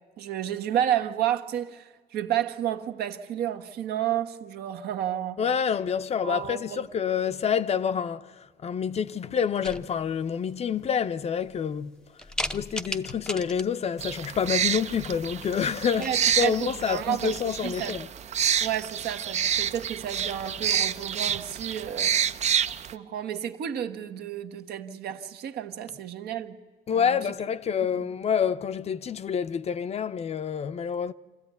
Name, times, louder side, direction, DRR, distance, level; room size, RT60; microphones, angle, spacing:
voice 1, 0.2-5.4 6.2-6.8 16.0-18.0 18.6-22.2 22.9-26.6 26.9-27.2 28.0-28.1, right 10 dB, 70° right, 1.3 m, -31 dB
voice 2, 5.4-12.0 12.5-18.1 26.9-31.1, left 7 dB, 40° left, 0.7 m, -28 dB
sound 1, 9.6-10.2 10.8-10.9 11.4-11.8 12.2-13.9 15.3-15.6 15.8-16.5, left 1 dB, 5° left, 0.7 m, -36 dB
sound 2, 14.0-22.9, right 8 dB, 40° right, 0.6 m, -28 dB
26.0 x 14.0 x 9.4 m
cardioid pair, 110°, 17 cm